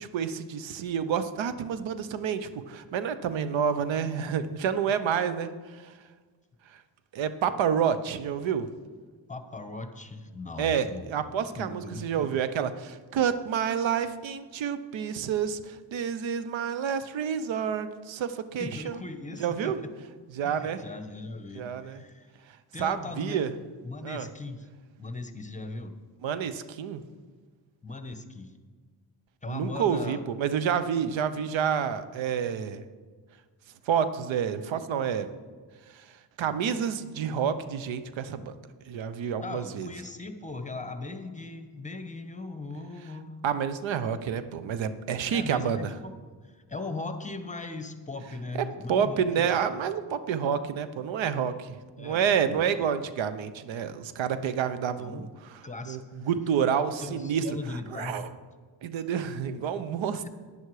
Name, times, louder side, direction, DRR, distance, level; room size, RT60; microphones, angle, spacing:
voice 1, 0.0-6.0 6.7-6.8 7.1-8.7 10.6-19.0 19.4-19.8 20.3-20.8 21.5-22.0 22.5-23.5 24.0-24.3 26.2-27.0 29.5-32.8 33.9-35.3 35.9-38.5 38.9-39.9 43.4-45.9 48.5-55.6 55.9-58.3 58.8-60.3, right 7 dB, 90° right, 12 dB, 0.8 m, -29 dB
voice 2, 9.3-11.1 11.4-12.3 18.6-19.9 20.4-22.3 22.7-23.4 23.8-24.7 25.0-26.0 27.8-28.5 29.4-30.2 39.4-43.4 45.3-46.1 46.4-49.6 52.0-52.2 52.5-52.6 55.0-55.3 55.6-56.3 57.0-58.3, left 3 dB, 15° left, 8 dB, 1.1 m, -39 dB
11.5 x 9.9 x 4.8 m, 1.5 s
cardioid pair, 80°, 45 cm